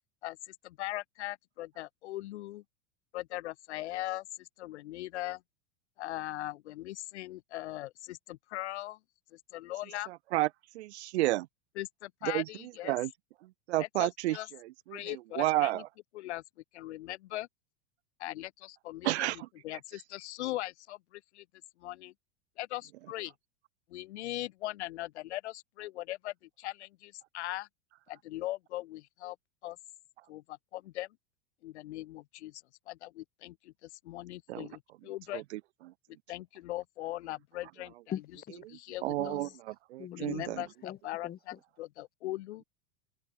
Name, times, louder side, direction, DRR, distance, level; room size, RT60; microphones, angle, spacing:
voice 1, 0.2-2.6 3.1-5.4 6.0-9.0 9.3-10.1 11.8-13.0 13.8-14.5 14.9-15.8 16.1-16.4 16.7-17.5 18.2-19.3 19.6-21.4 21.8-22.1 22.6-23.3 23.9-27.7 28.1-29.4 29.6-29.8 30.3-31.1 31.6-35.4 36.3-37.9 38.7-39.4 40.1-40.7 41.0-41.3 41.8-42.6, left 16 dB, 90° left, 0.7 m, -40 dB
voice 2, 10.1-10.5 10.7-11.5 12.2-12.4 12.8-13.1 13.7-14.4 14.6-15.9 19.0-19.5 34.5-34.7 35.3-35.6 39.0-40.6, right 17 dB, 80° right, 1.0 m, -31 dB
voice 3, 38.1-38.5 39.2-39.5 40.0-40.4 40.8-41.0 41.2-41.6, left 10 dB, 30° left, 3.9 m, -42 dB
open air
supercardioid pair, 135°, 33 cm